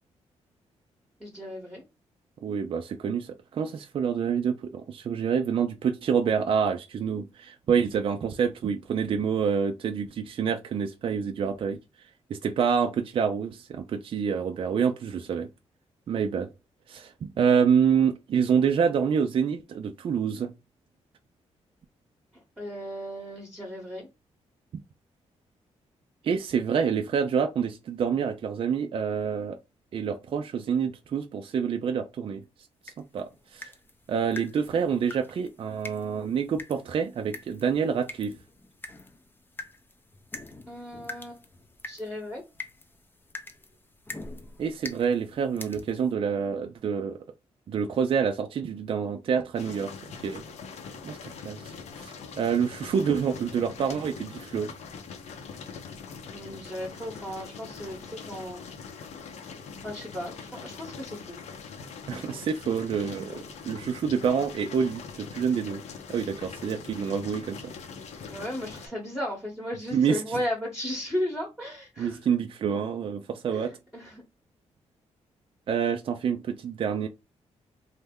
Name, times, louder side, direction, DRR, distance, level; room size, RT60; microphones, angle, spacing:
voice 1, 1.2-1.8 22.6-24.1 40.7-41.4 41.8-42.4 56.3-58.6 59.8-61.4 68.3-72.2 73.5-74.2, left 1 dB, 5° right, 1.0 m, -35 dB
voice 2, 2.4-11.8 12.3-15.5 16.1-16.5 16.9-20.5 26.2-29.6 29.9-32.4 33.1-33.7 34.1-38.3 44.6-47.2 47.7-49.9 50.2-50.4 51.0-51.7 52.0-54.7 62.1-65.8 66.1-67.7 69.9-70.4 72.0-73.7 75.7-77.1, right 7 dB, 50° right, 0.4 m, -27 dB
sound 1, 32.8-46.1, left 2 dB, 15° left, 0.5 m, -45 dB
sound 2, 49.6-68.9, left 5 dB, 70° left, 0.7 m, -42 dB
3.2 x 2.1 x 3.5 m
cardioid pair, 110°, 12 cm